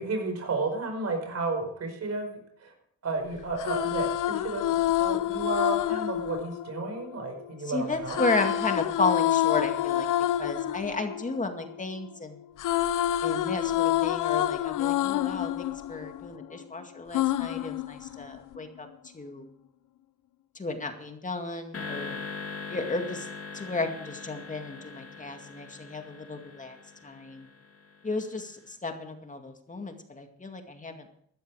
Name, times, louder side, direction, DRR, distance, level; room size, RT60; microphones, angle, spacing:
voice 1, 0.0-2.3 2.6-2.7 3.0-8.2, right 3 dB, 55° right, 5 dB, 5.1 m, -32 dB
sound 1, 3.4-7.5 8.1-12.1 12.4-16.6 17.1-18.6, left 13 dB, 90° left, 0.6 m, -28 dB
voice 2, 7.6-10.1 10.4-12.4 13.2-18.9 19.1-19.5 20.6-22.2 22.7-23.3 23.5-26.8 27.0-27.5 28.0-31.1, left 3 dB, 25° left, 5 dB, 2.1 m, -33 dB
sound 2, 21.7-28.1, left 4 dB, 50° left, 3.0 m, -41 dB
15.0 x 12.5 x 4.8 m, 0.68 s
cardioid pair, 105°, 30 cm